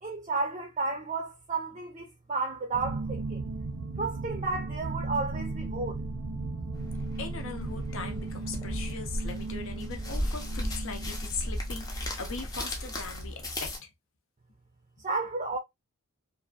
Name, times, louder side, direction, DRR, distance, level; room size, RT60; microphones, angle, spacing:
voice 1, 0.0-3.5 4.0-6.0 15.0-15.6, right 3 dB, 30° right, 0.5 m, -32 dB
sound 1, 2.7-12.2, right 3 dB, 85° right, 0.5 m, -36 dB
sound 2, 6.8-13.8, equal, 15° left, 0.5 m, -36 dB
voice 2, 7.2-13.9, left 4 dB, 60° left, 0.6 m, -40 dB
2.8 x 2.4 x 2.3 m
head